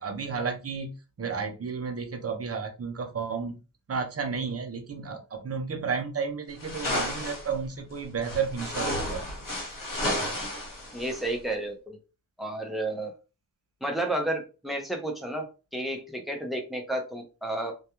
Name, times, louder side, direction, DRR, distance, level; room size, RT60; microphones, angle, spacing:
voice 1, 0.0-3.6 3.9-9.3, right 5 dB, 40° right, 5 dB, 0.6 m, -32 dB
sound 1, 6.6-7.5 8.2-11.3, left 1 dB, 55° left, 1.2 m, -32 dB
voice 2, 10.9-12.0 12.4-13.1 13.8-15.4 15.7-17.7, right 1 dB, ahead, 3 dB, 0.6 m, -31 dB
2.3 x 2.2 x 2.9 m, 0.31 s
wide cardioid pair, 95°, 38 cm